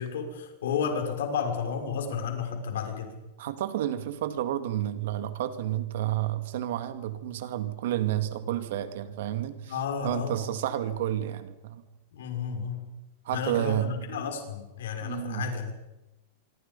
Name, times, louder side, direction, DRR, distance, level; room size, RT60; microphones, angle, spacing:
voice 1, 0.0-3.1 9.7-10.5 12.1-12.9 13.3-15.7, left 6 dB, 80° left, 4 dB, 6.2 m, -32 dB
voice 2, 3.4-9.8 10.0-11.8 13.2-13.9 15.0-15.5, right 12 dB, 55° right, 10 dB, 2.3 m, -30 dB
26.0 x 24.5 x 5.6 m, 0.99 s
supercardioid pair, 180°, 0 cm